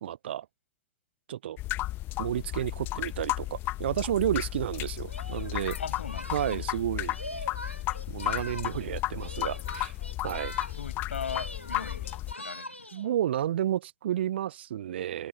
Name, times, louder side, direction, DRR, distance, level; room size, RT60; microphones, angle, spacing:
voice 1, 0.0-0.5 1.3-1.6 2.2-5.8 6.3-7.2 8.1-9.9 10.2-10.5 12.9-15.3, right 11 dB, 60° right, 0.8 m, -31 dB
sound 1, 1.6-12.4, left 16 dB, 30° left, 1.3 m, -34 dB
Singing, 5.1-8.9 9.2-10.9 11.2-13.1, left 1 dB, 90° left, 3.3 m, -42 dB
voice 2, 5.8-6.6 10.7-13.1, left 6 dB, 70° left, 7.0 m, -39 dB
figure-of-eight pair, 100°, 7 cm